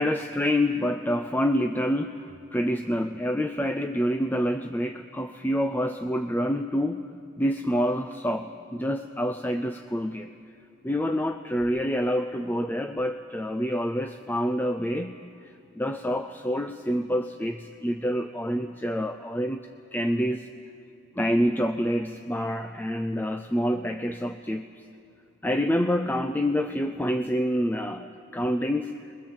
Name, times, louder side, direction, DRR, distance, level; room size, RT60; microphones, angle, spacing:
voice 1, 0.0-7.1 7.4-10.3 10.8-15.2 15.8-20.5 21.2-24.7 25.4-28.9, equal, 10° left, 8 dB, 0.5 m, -27 dB
28.0 x 22.0 x 7.5 m, 2.6 s
head